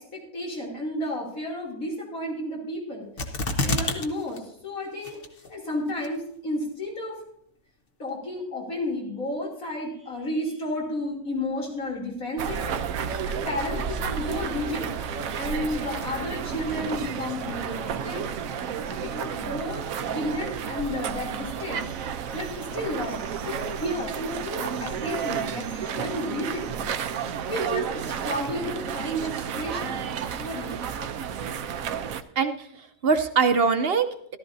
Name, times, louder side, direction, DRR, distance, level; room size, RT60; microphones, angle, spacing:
voice 1, 0.0-3.1 3.5-5.2 5.5-7.2 8.0-12.7 13.3-14.9 15.3-18.3 18.9-21.9 22.3-26.9 27.5-30.1 30.4-30.9, left 1 dB, 80° left, -3 dB, 3.4 m, -32 dB
sound 1, 3.2-4.1 4.4-4.5 5.0-5.5 6.0-6.1, left 2 dB, 45° left, 1.2 m, -26 dB
sound 2, 12.4-32.2, right 7 dB, 80° right, 1.1 m, -31 dB
voice 2, 32.4-34.4, right 5 dB, 50° right, 8 dB, 0.9 m, -23 dB
14.5 x 12.5 x 2.7 m, 0.69 s
omnidirectional pair, 1.4 m